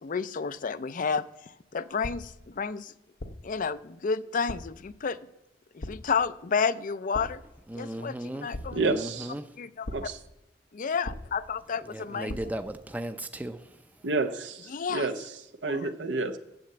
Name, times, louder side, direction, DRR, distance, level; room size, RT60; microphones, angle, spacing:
voice 1, 0.0-2.9 3.4-5.3 5.7-7.4 7.7-8.8 9.6-10.1 10.7-12.4 14.7-15.1 15.7-15.9, left 5 dB, 50° left, 0.5 m, -31 dB
sound 1, 2.0-2.5 3.2-3.6 4.5-4.9 5.8-6.3 7.1-7.6 8.5-9.1 9.8-10.3 11.0-11.6 12.3-12.7, left 1 dB, 80° left, 0.8 m, -40 dB
voice 2, 7.7-9.6 11.9-14.1, right 1 dB, 10° right, 0.5 m, -37 dB
voice 3, 8.7-9.3 9.9-10.2 14.0-15.2 15.6-16.4, right 3 dB, 80° right, 0.8 m, -29 dB
10.5 x 7.8 x 7.8 m
head